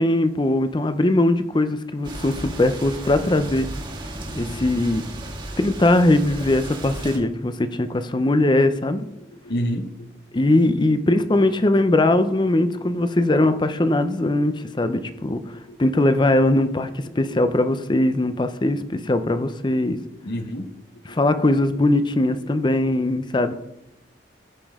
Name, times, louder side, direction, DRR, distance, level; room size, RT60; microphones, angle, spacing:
voice 1, 0.0-3.7 4.3-5.0 5.6-9.1 10.3-15.4 15.8-20.0 21.0-23.5, left 1 dB, 25° left, 10 dB, 0.5 m, -20 dB
sound 1, 2.0-7.2, right 1 dB, 25° right, 1.6 m, -34 dB
voice 2, 9.4-10.1 15.0-15.1 15.5-15.8 20.2-20.7 21.1-21.2, equal, 60° left, 6 dB, 0.9 m, -29 dB
15.0 x 5.4 x 3.6 m, 0.87 s
head